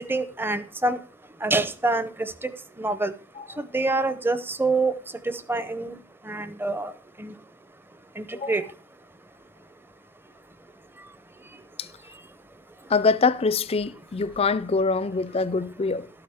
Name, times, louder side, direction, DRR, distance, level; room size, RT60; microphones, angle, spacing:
voice 1, 0.1-1.0 1.4-2.5 2.8-3.1 3.7-4.9 5.3-6.0 6.3-6.9 7.2-7.3 8.2-8.6, right 2 dB, 10° right, 0.6 m, -26 dB
voice 2, 12.9-16.1, left 4 dB, 30° left, 0.4 m, -24 dB
12.5 x 8.7 x 3.5 m
head